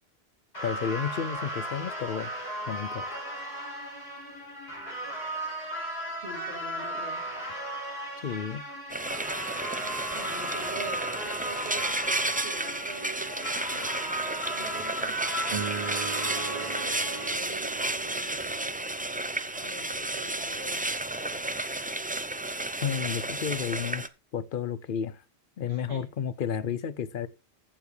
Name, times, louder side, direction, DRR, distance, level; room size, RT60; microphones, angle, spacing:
sound 1, 0.5-17.3, right 1 dB, 90° left, 7.7 m, -36 dB
voice 1, 0.6-3.3 8.2-8.7 22.8-24.0 24.3-25.2 25.6-27.3, left 7 dB, 60° left, 0.8 m, -32 dB
voice 2, 6.2-7.3 9.8-15.8 16.2-18.7 19.5-21.4 25.6-26.1, right 3 dB, 80° right, 2.9 m, -45 dB
Frying (food), 8.9-24.1, right 2 dB, 15° right, 0.4 m, -32 dB
sound 2, 15.5-20.0, right 7 dB, 40° right, 0.8 m, -40 dB
14.5 x 7.1 x 3.2 m
omnidirectional pair, 1.1 m